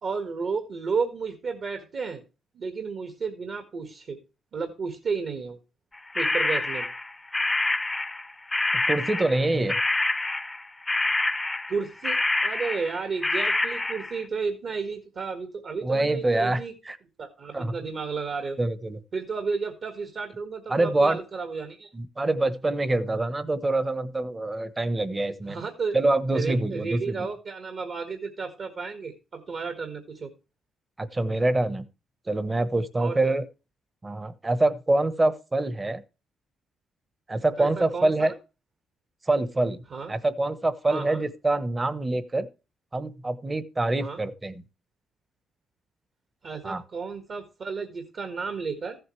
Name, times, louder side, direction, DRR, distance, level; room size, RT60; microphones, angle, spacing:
voice 1, 0.0-2.2 2.5-4.2 4.5-5.6 6.1-6.9 11.7-16.7 17.2-18.6 19.1-21.9 25.5-26.0 26.3-30.3 33.0-33.3 37.6-38.3 39.9-40.1 40.9-41.2 44.0-44.2 46.4-49.0, right 5 dB, 55° right, 5 dB, 1.7 m, -32 dB
sound 1, 6.1-8.3 8.5-14.1, left 2 dB, 15° left, 0.7 m, -26 dB
voice 2, 8.9-9.7 15.8-17.0 17.5-17.7 18.6-19.0 20.7-21.2 21.9-25.6 25.9-27.3 31.0-31.8 32.3-33.4 34.0-36.0 37.3-38.3 39.3-39.8 40.1-42.5 42.9-44.6 46.6-46.8, right 2 dB, 20° right, 14 dB, 1.0 m, -25 dB
14.5 x 7.9 x 3.2 m, 0.31 s
cardioid pair, 90°, 0 cm